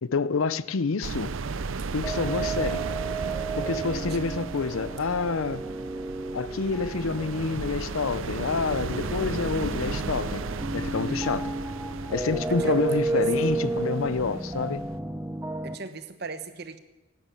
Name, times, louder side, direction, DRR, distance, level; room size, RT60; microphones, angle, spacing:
voice 1, 0.0-1.3 1.9-2.8 3.6-5.6 6.3-10.4 10.7-11.5 12.1-14.8, left 4 dB, 75° left, 0.6 m, -28 dB
sound 1, 1.0-15.0, right 4 dB, 70° right, 0.6 m, -35 dB
sound 2, 2.0-15.8, right 2 dB, 10° right, 0.7 m, -32 dB
voice 2, 9.0-9.5 12.5-13.6 15.6-16.8, right 4 dB, 50° right, 1.0 m, -40 dB
12.0 x 11.0 x 8.8 m
head